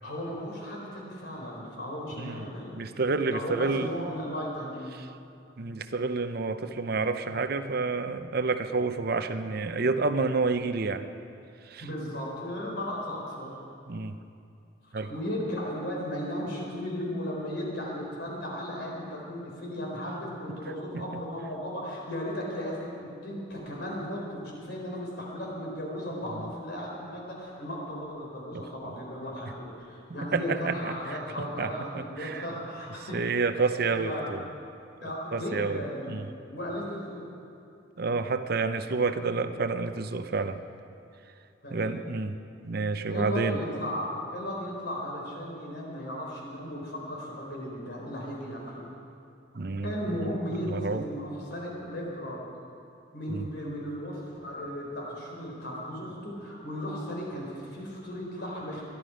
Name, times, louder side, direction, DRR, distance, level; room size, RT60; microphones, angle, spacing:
voice 1, 0.0-2.7 3.3-4.9 11.8-13.5 14.8-33.2 34.0-34.3 35.0-36.1 36.4-37.3 41.6-42.0 43.1-48.9 49.8-52.4 53.1-58.8, equal, 60° left, -2 dB, 4.2 m, -36 dB
voice 2, 2.2-3.9 5.6-11.1 11.7-11.9 13.9-14.2 14.9-15.1 21.1-21.2 26.3-26.4 28.5-28.9 30.2-31.2 31.6-31.7 32.2-32.4 33.1-34.4 35.3-35.8 36.1-36.2 38.0-40.6 41.7-42.4 42.6-43.6 49.5-50.4 50.6-51.0 53.3-53.5, right 4 dB, 55° right, 9 dB, 0.7 m, -29 dB
21.0 x 11.5 x 5.1 m, 2.5 s
head